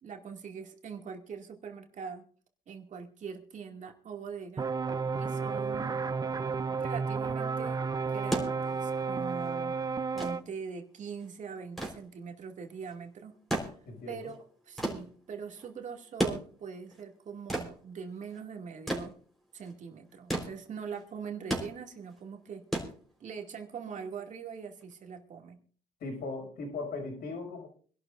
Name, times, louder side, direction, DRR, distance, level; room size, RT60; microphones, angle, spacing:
voice 1, 0.0-2.3 2.7-4.7 5.2-6.0 6.8-7.8 8.1-9.7 10.1-13.4 14.1-19.1 19.5-22.7 23.2-25.6, right 6 dB, 45° right, 3 dB, 2.5 m, -42 dB
sound 1, 4.6-10.4, right 5 dB, 25° right, 0.6 m, -32 dB
sound 2, 8.1-23.6 24.8-24.9, right 1 dB, ahead, 4.3 m, -37 dB
voice 2, 13.9-14.3 26.0-27.7, left 3 dB, 65° left, 4 dB, 6.3 m, -38 dB
26.0 x 12.0 x 2.6 m, 0.43 s
cardioid pair, 110°, 17 cm